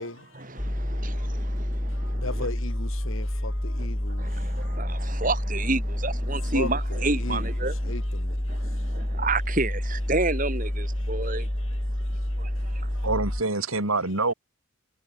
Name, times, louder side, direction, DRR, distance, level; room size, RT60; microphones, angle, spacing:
voice 1, 0.0-1.6 1.9-5.0 6.3-9.1 11.0-13.1, left 2 dB, 70° left, 3.1 m, -40 dB
sound 1, 0.6-13.4, left 1 dB, 15° left, 0.9 m, -29 dB
voice 2, 4.8-7.7 9.2-11.4, right 3 dB, 40° right, 3.4 m, -28 dB
voice 3, 13.0-14.3, right 3 dB, 85° right, 4.4 m, -26 dB
head